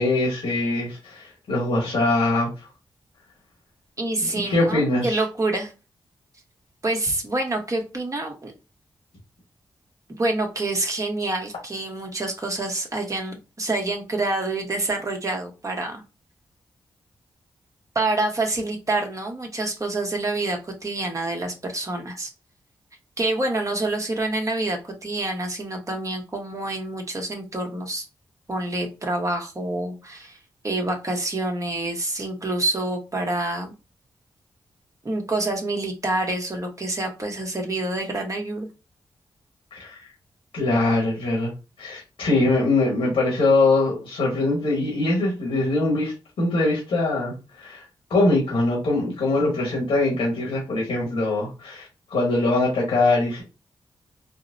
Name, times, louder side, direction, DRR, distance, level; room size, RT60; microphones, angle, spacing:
voice 1, 0.0-2.5 4.3-5.2 39.7-40.1 40.5-41.5 41.8-47.8 48.1-53.4, left 2 dB, 85° left, -3 dB, 1.4 m, -22 dB
voice 2, 4.0-5.7 6.8-8.5 10.2-16.0 17.9-22.3 23.2-28.0 28.5-30.4 30.6-33.7 35.0-38.7, right 2 dB, 35° right, 3 dB, 1.1 m, -27 dB
3.9 x 2.0 x 2.6 m, 0.29 s
cardioid pair, 50°, 9 cm